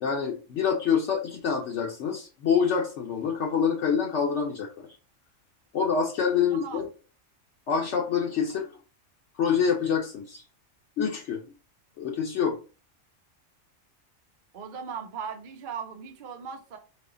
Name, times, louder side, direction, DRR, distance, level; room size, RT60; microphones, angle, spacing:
voice 1, 0.0-4.9 5.7-6.9 7.7-8.7 9.4-10.4 11.0-11.4 12.0-12.6, left 6 dB, 65° left, 0.9 m, -26 dB
voice 2, 6.3-6.9 14.5-16.8, right 6 dB, 60° right, 0.5 m, -38 dB
4.2 x 2.9 x 2.5 m
omnidirectional pair, 1.4 m